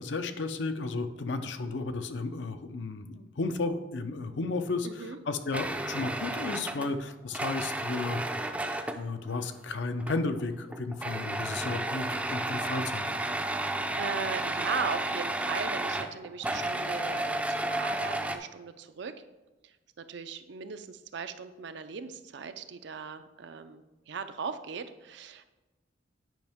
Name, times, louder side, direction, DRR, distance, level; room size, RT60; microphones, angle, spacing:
voice 1, 0.0-4.9 5.3-8.2 8.6-13.0, left 3 dB, 70° left, 8 dB, 0.6 m, -33 dB
voice 2, 4.8-5.2 13.5-19.2 19.6-25.5, right 5 dB, 65° right, 10 dB, 0.5 m, -38 dB
sound 1, 5.5-9.0 10.0-10.4 10.7-18.4, right 1 dB, 5° right, 0.4 m, -32 dB
9.2 x 5.4 x 3.5 m, 1.1 s
head